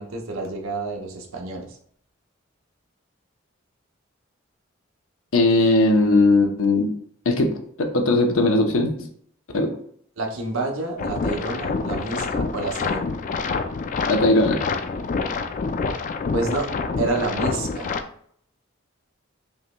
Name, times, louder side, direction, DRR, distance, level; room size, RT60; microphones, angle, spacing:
voice 1, 0.0-1.8 10.2-13.0 16.3-16.7 17.0-17.9, right 3 dB, 80° right, 1 dB, 0.8 m, -28 dB
voice 2, 5.3-6.9 7.3-7.5 7.8-9.1 9.5-9.8 14.1-14.6, left 2 dB, 85° left, 4 dB, 0.7 m, -18 dB
sound 1, 11.0-18.0, left 4 dB, 40° left, 0.3 m, -27 dB
5.4 x 3.0 x 2.2 m, 0.63 s
head